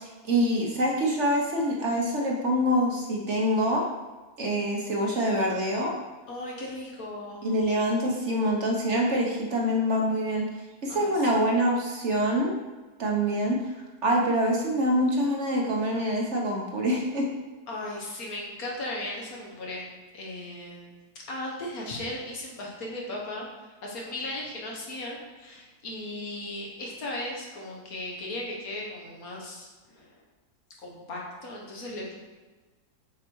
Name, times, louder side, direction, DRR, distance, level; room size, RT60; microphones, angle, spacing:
voice 1, 0.0-3.9 4.4-5.9 7.4-10.5 10.8-12.5 13.0-13.6 14.0-17.3, equal, 50° right, -1 dB, 1.2 m, -25 dB
voice 2, 6.3-7.4 10.9-11.4 17.7-19.9 20.1-20.9 21.2-30.1 30.8-32.2, left 1 dB, 60° left, -2 dB, 1.8 m, -37 dB
6.8 x 4.8 x 4.6 m, 1.2 s
omnidirectional pair, 1.7 m